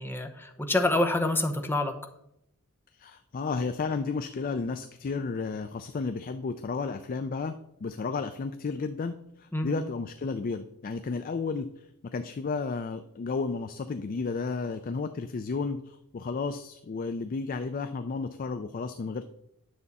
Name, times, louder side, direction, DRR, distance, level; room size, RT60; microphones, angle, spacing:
voice 1, 0.0-2.0 9.5-9.7, left 2 dB, 10° left, 5 dB, 0.8 m, -27 dB
voice 2, 3.0-19.2, left 4 dB, 40° left, 9 dB, 0.4 m, -33 dB
9.5 x 6.7 x 4.1 m, 0.78 s
head